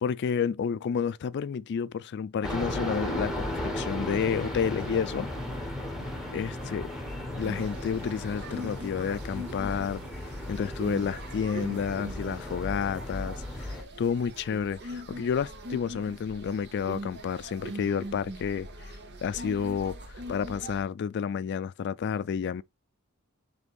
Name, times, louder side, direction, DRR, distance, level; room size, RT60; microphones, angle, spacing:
voice 1, 0.0-5.3 6.3-6.9 7.3-10.0 10.5-18.9 19.2-20.0 20.3-22.6, left 7 dB, 50° left, 0.3 m, -30 dB
sound 1, 2.4-13.8, left 1 dB, ahead, 1.2 m, -35 dB
sound 2, 7.4-20.8, right 1 dB, 50° right, 0.9 m, -42 dB
5.1 x 3.5 x 2.3 m
head